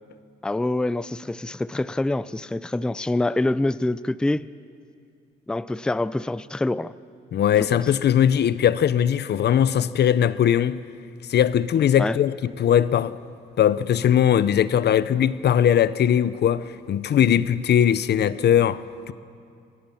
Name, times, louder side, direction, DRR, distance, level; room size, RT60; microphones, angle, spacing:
voice 1, 0.4-4.5 5.5-6.9 7.6-7.7 12.0-12.2, left 2 dB, 5° left, 0.4 m, -25 dB
voice 2, 7.3-10.8 11.3-13.2 13.6-18.8 19.1-19.2, left 9 dB, 55° left, 0.7 m, -20 dB
26.0 x 18.0 x 5.7 m
cardioid pair, 90°, 20 cm